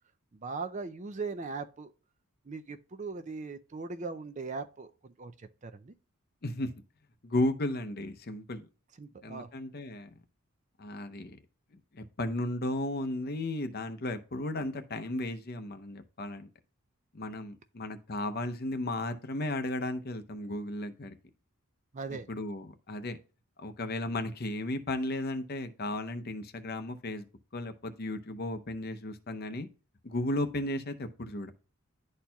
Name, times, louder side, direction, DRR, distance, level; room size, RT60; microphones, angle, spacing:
voice 1, 0.3-1.9 2.5-5.9 9.0-9.5 21.9-22.3, right 4 dB, 35° right, 0.4 m, -39 dB
voice 2, 7.2-8.7 9.2-10.1 10.8-11.4 11.9-16.5 17.1-21.1 22.3-23.2 23.6-27.3 27.5-29.7 30.0-31.5, left 1 dB, 45° left, 0.7 m, -34 dB
11.5 x 4.3 x 2.3 m
head